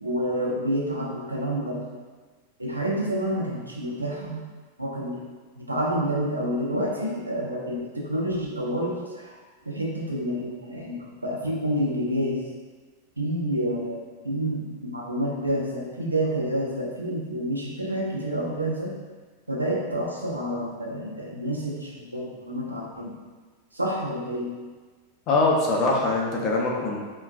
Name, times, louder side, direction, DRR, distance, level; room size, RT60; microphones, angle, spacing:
voice 1, 0.0-1.8 2.6-4.5 4.8-5.3 5.6-9.4 9.7-12.5 13.2-18.9 19.5-23.1 23.7-24.5, equal, 85° right, -3 dB, 0.6 m, -28 dB
voice 2, 25.3-27.0, left 2 dB, 35° left, -2 dB, 0.6 m, -23 dB
3.7 x 2.5 x 2.4 m, 1.4 s
figure-of-eight pair, 90°, 0 cm